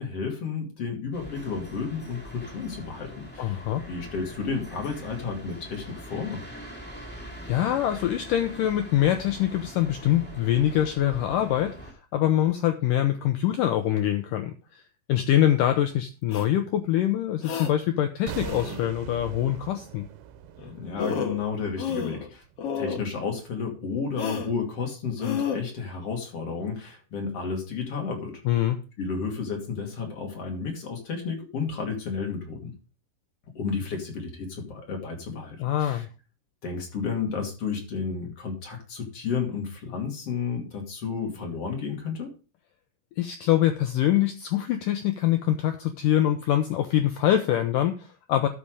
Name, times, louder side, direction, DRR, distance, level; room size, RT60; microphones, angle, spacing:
voice 1, 0.0-6.4 20.6-22.4 22.7-28.4 29.0-32.7 33.5-36.0 36.6-42.3, left 5 dB, 40° left, 1 dB, 3.0 m, -32 dB
sound 1, 1.1-11.9, equal, 10° left, 0.6 m, -43 dB
voice 2, 3.4-3.8 7.5-14.8 15.1-20.1 28.5-28.8 35.6-36.1 43.2-48.5, left 12 dB, 85° left, 7 dB, 1.9 m, -24 dB
sound 2, 16.3-16.4 17.4-17.7 18.4-18.9 20.6-20.7 21.0-21.4 21.8-22.3 22.6-23.0 24.2-24.5 25.2-25.6, left 6 dB, 60° left, 1.7 m, -31 dB
sound 3, 18.3-23.3 23.5-23.7, right 10 dB, 80° right, 2.9 m, -42 dB
12.5 x 5.9 x 4.9 m, 0.35 s
omnidirectional pair, 4.7 m